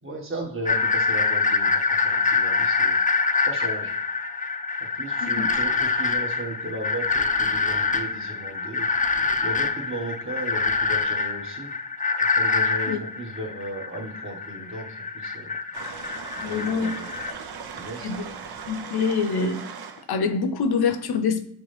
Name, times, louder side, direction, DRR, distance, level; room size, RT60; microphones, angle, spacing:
voice 1, 0.0-3.0 3.4-3.9 4.9-8.9 9.4-11.7 12.2-15.5 16.4-17.1 17.7-18.1, right 2 dB, 35° right, -1 dB, 1.4 m, -36 dB
sound 1, 0.7-17.3, left 4 dB, 20° left, 0.4 m, -25 dB
sound 2, 15.7-20.1, right 6 dB, 75° right, 0.6 m, -38 dB
voice 2, 16.4-16.9 18.0-18.2 18.7-19.6 20.1-21.4, left 5 dB, 80° left, 10 dB, 0.6 m, -25 dB
6.0 x 2.1 x 3.3 m, 0.66 s
cardioid pair, 55°, 38 cm